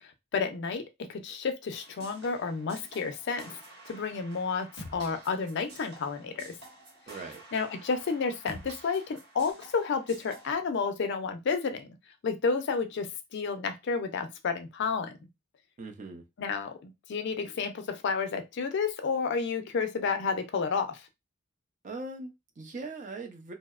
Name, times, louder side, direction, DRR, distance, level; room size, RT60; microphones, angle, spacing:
voice 1, 0.3-0.8 1.1-3.6 3.9-6.5 7.5-11.9 12.2-15.1 16.4-21.0, left 5 dB, 55° left, 0.4 m, -31 dB
sound 1, 1.7-10.5, right 1 dB, 55° right, 1.0 m, -49 dB
voice 2, 7.1-7.4 15.8-16.2 21.8-23.5, right 3 dB, 35° right, 0.4 m, -40 dB
2.7 x 2.0 x 2.3 m
head